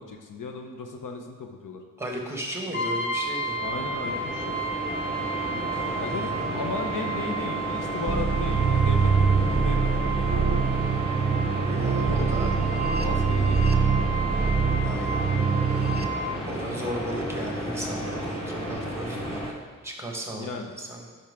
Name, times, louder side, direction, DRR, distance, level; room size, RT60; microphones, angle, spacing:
voice 1, 0.0-1.8 3.6-4.5 6.0-10.4 11.4-14.1 20.4-20.7, left 3 dB, 65° left, 3 dB, 0.8 m, -36 dB
voice 2, 2.0-3.6 6.0-6.4 11.6-12.5 14.8-15.2 16.4-19.6 19.8-21.1, right 1 dB, 10° right, 0 dB, 1.5 m, -35 dB
Brass instrument, 2.7-16.4, right 4 dB, 35° left, 1.5 m, -33 dB
sound 1, 2.9-19.5, equal, 15° left, 1.5 m, -33 dB
sound 2, 8.1-16.1, right 5 dB, 30° right, 0.6 m, -24 dB
10.5 x 5.4 x 3.7 m, 1.5 s
wide cardioid pair, 95°, 33 cm